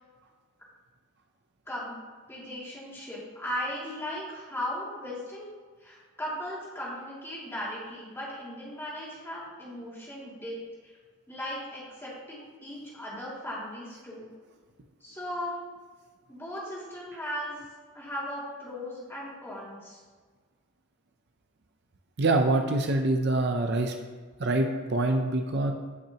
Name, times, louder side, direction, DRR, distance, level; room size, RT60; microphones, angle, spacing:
voice 1, 1.7-2.0 2.3-5.5 5.8-10.9 11.3-14.3 15.0-15.6 16.3-17.6 17.9-20.0, left 1 dB, 10° left, -6 dB, 2.5 m, -37 dB
voice 2, 22.2-24.0 24.4-25.7, right 2 dB, 50° right, 4 dB, 0.6 m, -25 dB
16.0 x 5.9 x 3.0 m, 1.5 s
head